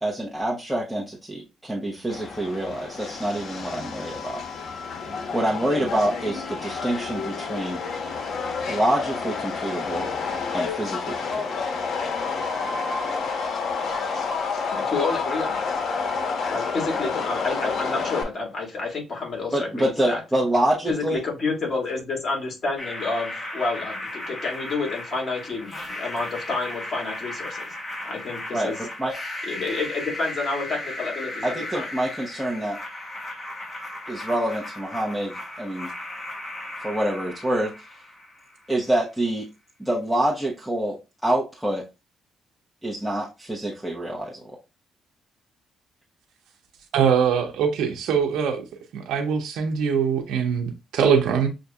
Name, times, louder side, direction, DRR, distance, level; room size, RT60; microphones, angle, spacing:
voice 1, 0.0-4.4 5.3-7.8 8.7-10.1 10.5-11.6 19.5-21.2 28.5-29.2 31.4-32.8 34.1-35.9 36.8-37.7 38.7-39.5 39.8-41.8 42.8-44.4, right 1 dB, ahead, 1.0 m, -26 dB
Subway metro underground, 2.1-18.2, left 5 dB, 60° left, 1.0 m, -29 dB
voice 2, 14.7-15.8 16.5-20.2 20.9-27.6 28.0-28.8 29.5-31.9, left 3 dB, 40° left, 2.1 m, -29 dB
sound 1, 22.8-38.7, left 1 dB, 25° left, 1.3 m, -36 dB
voice 3, 46.9-48.6 48.9-51.5, right 7 dB, 80° right, 0.7 m, -22 dB
6.3 x 2.6 x 2.3 m
cardioid pair, 90°, 0 cm